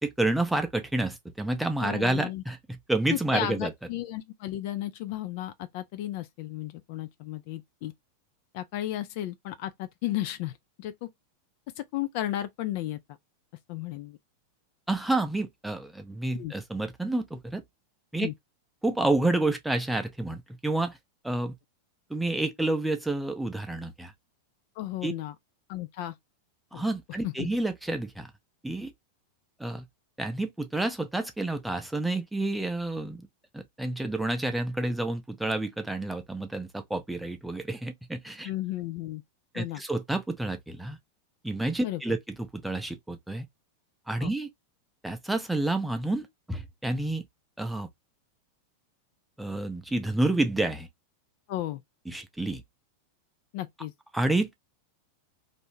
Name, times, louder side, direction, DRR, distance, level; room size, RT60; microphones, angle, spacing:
voice 1, 0.0-3.7 14.9-17.6 18.1-18.3 18.8-21.0 21.2-21.5 22.1-24.1 25.0-25.1 26.7-28.3 28.6-28.9 29.6-29.8 30.2-33.3 33.5-38.5 39.5-41.0 41.4-43.5 44.1-44.5 45.0-47.2 47.6-47.9 49.4-50.9 52.1-52.6 54.1-54.5, right 2 dB, 5° right, 0.5 m, -29 dB
voice 2, 1.8-2.4 3.1-7.9 8.5-10.5 10.8-11.1 11.8-13.0 13.7-14.2 16.3-16.5 18.2-18.3 24.8-25.3 25.7-26.2 26.7-26.8 27.2-27.5 38.4-39.2 39.5-39.8 41.8-42.0 44.2-44.3 51.5-51.8 53.5-53.9, left 14 dB, 45° left, 0.3 m, -34 dB
2.6 x 2.1 x 3.1 m
figure-of-eight pair, 90°, 0 cm